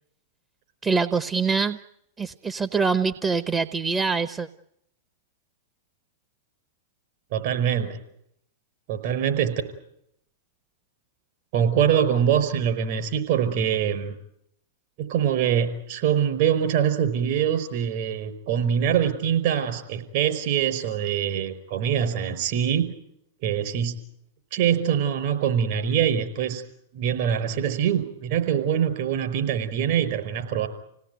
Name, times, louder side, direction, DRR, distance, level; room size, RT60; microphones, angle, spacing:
voice 1, 0.8-1.8 2.2-4.5, right 5 dB, 20° right, 10 dB, 0.9 m, -24 dB
voice 2, 7.3-8.0 8.9-9.6 11.5-14.2 15.0-22.9 23.4-24.0 24.5-26.6 26.9-30.7, right 9 dB, 55° right, 9 dB, 5.1 m, -24 dB
28.0 x 18.0 x 9.3 m, 0.80 s
hypercardioid pair, 105°, 0 cm